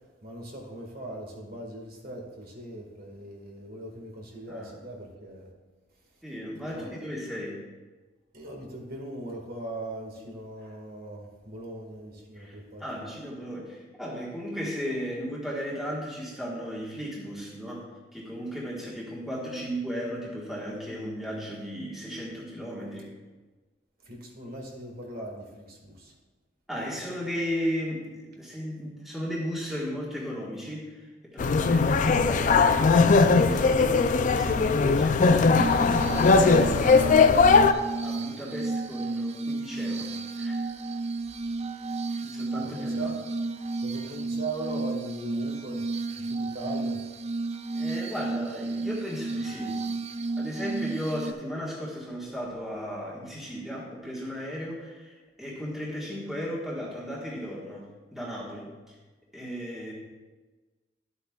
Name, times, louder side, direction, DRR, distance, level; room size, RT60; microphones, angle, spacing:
voice 1, 0.2-5.5 6.7-7.0 8.3-13.0 24.0-26.1 42.5-43.1 43.8-45.9 46.3-47.0, right 1 dB, 55° right, 0 dB, 1.8 m, -39 dB
voice 2, 6.2-7.6 12.3-17.8 18.1-23.1 26.7-37.3 38.0-40.6 42.2-43.1 47.7-49.8 50.4-59.0 59.3-59.9, equal, ahead, -6 dB, 1.5 m, -35 dB
sound 1, 31.4-37.7, left 4 dB, 45° left, 0.4 m, -20 dB
Glass, 35.6-51.3, right 3 dB, 35° right, 0.4 m, -32 dB
12.0 x 8.1 x 2.4 m, 1.3 s
head